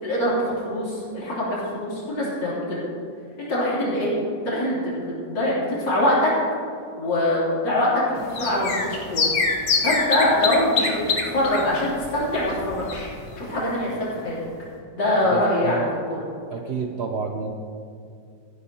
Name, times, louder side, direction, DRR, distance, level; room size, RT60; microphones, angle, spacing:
voice 1, 0.0-2.8 3.4-4.1 4.5-6.3 7.0-9.3 9.8-11.0 11.3-13.1 13.4-14.4 14.9-16.2, left 1 dB, 80° left, -7 dB, 4.0 m, -23 dB
sound 1, 8.2-13.4 13.6-13.7 14.0-14.1, left 4 dB, 65° left, 1.7 m, -26 dB
voice 2, 15.2-16.0 16.5-17.5, right 5 dB, 90° right, 3 dB, 0.5 m, -29 dB
14.5 x 11.5 x 2.9 m, 2.3 s
omnidirectional pair, 2.0 m